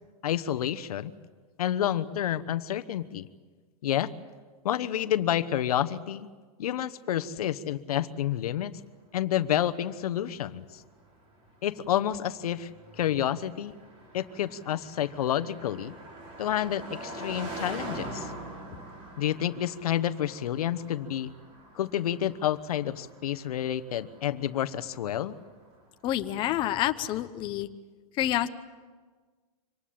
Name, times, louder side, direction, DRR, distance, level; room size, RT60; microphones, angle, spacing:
voice 1, 0.2-1.1 1.6-3.3 3.8-4.1 4.6-6.3 6.6-8.7 9.1-10.8 11.6-12.7 13.0-13.7 14.1-16.0 16.4-18.3 19.2-21.3 21.7-25.4, left 11 dB, 80° left, 12 dB, 1.1 m, -29 dB
Car passing by, 9.4-25.9, right 1 dB, 30° right, 4.7 m, -44 dB
voice 2, 26.0-27.7 28.2-28.5, left 13 dB, 25° left, 8 dB, 0.8 m, -28 dB
25.0 x 19.0 x 8.7 m, 1.4 s
supercardioid pair, 155°, 19 cm